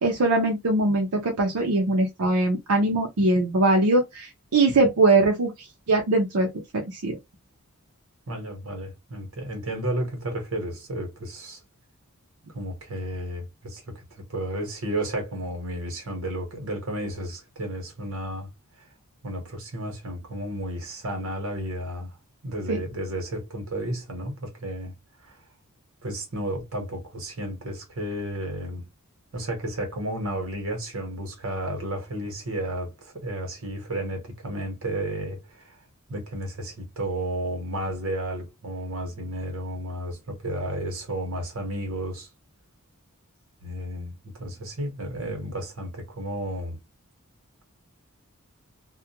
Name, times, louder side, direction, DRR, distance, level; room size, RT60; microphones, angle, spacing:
voice 1, 0.0-6.5 6.9-7.2 22.7-22.8, right 2 dB, 85° right, 0.6 m, -22 dB
voice 2, 8.3-11.6 12.5-18.5 19.2-22.2 22.4-24.9 25.2-25.4 26.0-28.9 29.3-35.8 36.1-42.3 43.6-46.8, right 1 dB, 65° right, 1.1 m, -32 dB
2.3 x 2.2 x 2.8 m
head